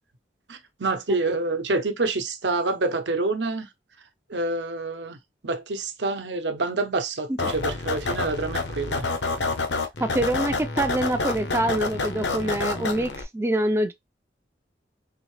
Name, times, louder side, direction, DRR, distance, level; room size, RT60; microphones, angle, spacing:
voice 1, 0.5-3.7 4.3-5.2 5.4-9.1, right 3 dB, 75° right, 0.9 m, -27 dB
sound 1, 7.4-13.2, left 3 dB, 80° left, 1.0 m, -28 dB
voice 2, 10.0-13.9, right 1 dB, 15° right, 0.3 m, -25 dB
4.0 x 3.6 x 3.2 m
head